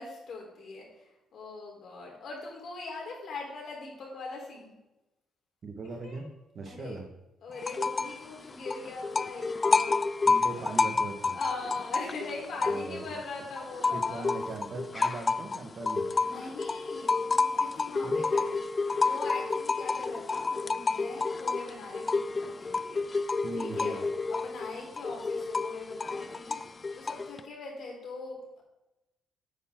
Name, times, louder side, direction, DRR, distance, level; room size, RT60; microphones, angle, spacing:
voice 1, 0.0-4.7 6.0-6.3 6.7-7.0 7.4-10.0 11.3-14.2 16.2-23.1 23.5-28.6, left 3 dB, 60° left, -1 dB, 4.1 m, -42 dB
voice 2, 5.6-6.3 6.5-7.1 10.2-11.4 12.7-13.2 13.9-16.1 18.0-18.2 23.4-24.1, right 3 dB, 50° right, 5 dB, 1.8 m, -39 dB
sound 1, 7.6-8.2 8.5-13.2 13.6-27.4, left 4 dB, 30° left, 0.4 m, -30 dB
9.3 x 9.0 x 3.9 m, 0.96 s
cardioid pair, 90°, 0 cm